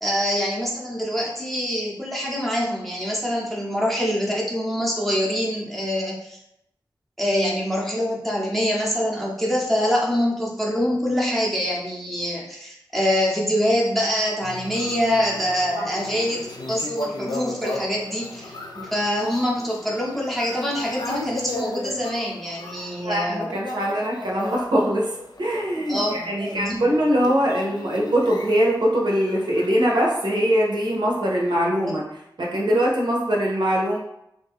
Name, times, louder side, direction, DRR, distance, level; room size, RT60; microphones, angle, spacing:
voice 1, 0.0-6.4 7.2-18.5 18.9-23.5 25.9-26.8 31.9-32.0, equal, ahead, -4 dB, 0.8 m, -25 dB
sound 1, 14.4-30.6 31.1-31.5, left 1 dB, 60° left, 0.4 m, -36 dB
voice 2, 23.0-25.1 25.4-32.0 32.4-34.0, equal, 65° right, -3 dB, 0.7 m, -22 dB
2.5 x 2.2 x 3.4 m, 0.80 s
wide cardioid pair, 50°, 8 cm